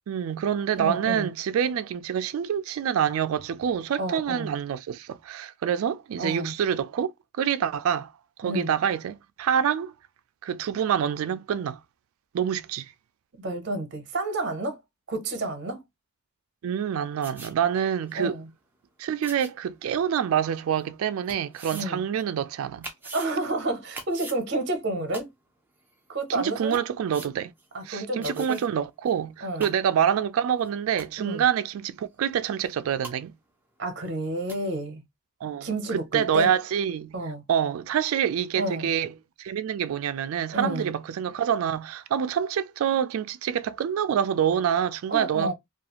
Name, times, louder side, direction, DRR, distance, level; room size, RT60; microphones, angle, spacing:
voice 1, 0.1-7.1 7.4-8.1 8.4-9.9 10.4-11.8 12.3-12.9 16.6-18.4 19.0-22.9 26.3-27.5 27.9-33.3 35.4-37.1 37.5-39.1 39.4-45.5, right 8 dB, 70° right, 0.3 m, -26 dB
voice 2, 0.8-1.3 4.0-4.5 6.2-6.5 8.4-8.7 13.4-14.8 15.1-15.8 18.1-18.5 21.7-22.0 23.1-25.3 26.1-26.8 27.7-28.6 29.4-29.7 31.2-31.4 33.8-35.0 35.6-36.5 37.1-37.4 38.6-38.9 40.5-40.9 45.1-45.5, right 2 dB, 50° right, 0.7 m, -30 dB
sound 1, 17.2-17.5 18.1-18.2 19.2-19.5 20.4-20.5 21.3-21.9 22.2-22.3 22.8-23.3 23.9-24.4 25.1-25.2 25.9-26.0 26.3-26.4 26.7-26.8 27.1-27.3 27.6-27.7 28.2-28.7 29.1-29.2 29.4-29.7 30.6-30.7 31.0-31.3 32.7-32.8 33.0-33.1 34.1-34.2 34.5-34.6, right 3 dB, 10° right, 0.4 m, -41 dB
2.4 x 2.3 x 2.9 m
head